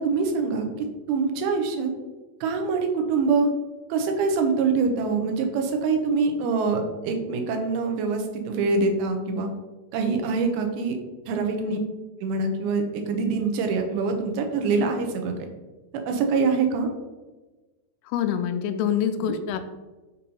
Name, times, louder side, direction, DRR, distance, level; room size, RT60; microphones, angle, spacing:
voice 1, 0.0-1.9 2.4-3.5 3.9-9.5 9.9-11.0 11.3-11.8 12.2-15.3 16.1-16.9 19.3-19.4, right 4 dB, 90° right, 4 dB, 2.7 m, -24 dB
voice 2, 11.6-11.9 18.1-19.6, left 9 dB, 90° left, 8 dB, 2.5 m, -26 dB
7.0 x 2.8 x 5.3 m, 1.2 s
omnidirectional pair, 4.3 m